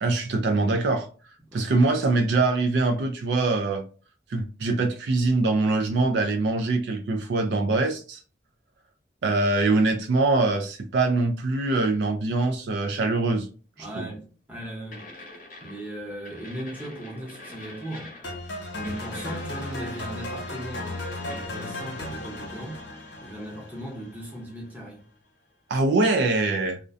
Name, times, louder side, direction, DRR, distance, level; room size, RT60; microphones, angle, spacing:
voice 1, 0.0-1.1 1.5-3.8 4.3-8.2 9.2-13.5 13.8-14.1 25.7-26.8, right 3 dB, 65° right, 0.3 m, -23 dB
voice 2, 13.8-15.1 15.6-18.1 18.8-22.8 23.2-25.0, right 1 dB, 10° right, 0.7 m, -38 dB
sound 1, 14.0-14.2 14.9-16.0 16.3-18.5 18.8-20.4 21.3-21.5, left 2 dB, 45° left, 0.7 m, -44 dB
sound 2, 18.2-24.4, left 2 dB, 85° left, 0.8 m, -35 dB
2.4 x 2.1 x 2.4 m
head